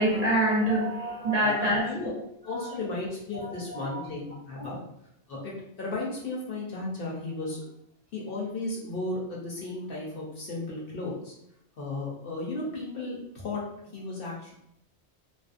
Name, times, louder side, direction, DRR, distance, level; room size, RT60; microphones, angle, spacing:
voice 1, 0.0-1.9 2.4-2.7 3.3-4.0 4.6-4.8, right 1 dB, 50° right, -7 dB, 0.5 m, -26 dB
voice 2, 1.4-2.1 2.4-4.8 5.3-5.5 5.8-7.6 8.1-11.3 11.8-13.6 13.9-14.5, left 2 dB, 60° left, -4 dB, 0.8 m, -34 dB
2.5 x 2.0 x 2.4 m, 0.77 s
omnidirectional pair, 1.2 m